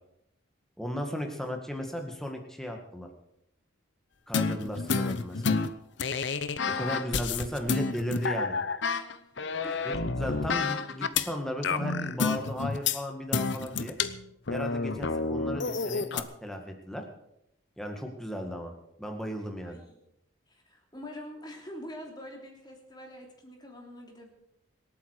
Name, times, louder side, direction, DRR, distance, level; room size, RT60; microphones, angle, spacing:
voice 1, 0.8-3.1 4.3-5.6 6.6-8.5 9.8-14.0 14.5-17.0 17.8-19.8, equal, ahead, 3 dB, 1.9 m, -35 dB
sound 1, 4.3-11.3 11.6-13.0 13.3-16.2, left 4 dB, 55° left, 0.8 m, -30 dB
voice 2, 6.7-7.3 9.6-10.3 19.6-20.0 20.5-24.3, equal, 20° left, 1 dB, 3.1 m, -45 dB
25.5 x 8.8 x 4.9 m, 0.80 s
head